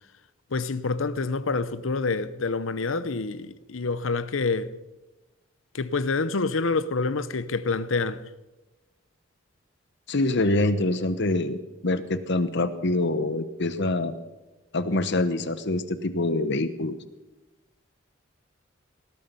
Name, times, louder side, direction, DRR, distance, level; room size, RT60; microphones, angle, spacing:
voice 1, 0.5-4.7 5.7-8.2, left 3 dB, 80° left, 0.8 m, -27 dB
voice 2, 10.1-14.1 14.7-16.9, left 2 dB, 60° left, 1.1 m, -25 dB
19.0 x 13.5 x 5.5 m
head